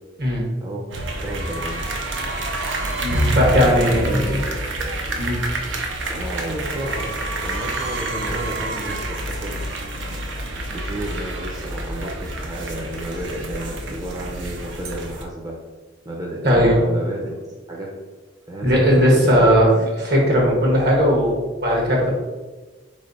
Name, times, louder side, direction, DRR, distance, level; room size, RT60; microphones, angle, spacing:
voice 1, 0.6-0.9 1.2-1.9 3.5-4.4 6.1-9.7 10.5-15.6 16.0-18.0 18.5-19.4 19.7-19.9, equal, 20° right, -3 dB, 0.6 m, -32 dB
sound 1, 0.9-15.2, right 1 dB, 85° right, 0.7 m, -27 dB
voice 2, 3.0-4.4 5.2-5.4 16.4-16.8 18.6-19.7 20.0-22.1, equal, 60° right, -2 dB, 1.4 m, -17 dB
4.1 x 3.2 x 4.0 m, 1.3 s
head